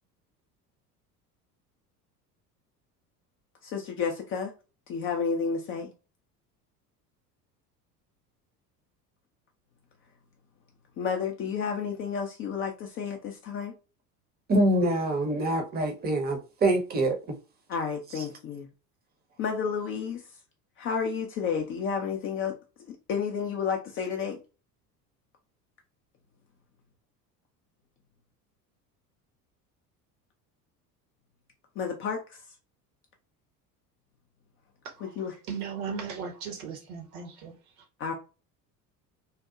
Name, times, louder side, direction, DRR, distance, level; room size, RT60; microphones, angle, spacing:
voice 1, 3.6-4.5 4.9-5.9 11.0-13.7 17.7-18.7 19.4-20.2 20.8-22.6 23.1-24.4 31.8-32.4 35.0-35.3 35.9-36.0 38.0-38.1, left 6 dB, 30° left, 0.4 m, -31 dB
voice 2, 14.5-17.3 18.2-18.3, right 1 dB, 20° right, 0.7 m, -25 dB
voice 3, 35.5-37.5, right 7 dB, 60° right, 0.9 m, -37 dB
2.8 x 2.1 x 2.4 m
figure-of-eight pair, 65°, 49 cm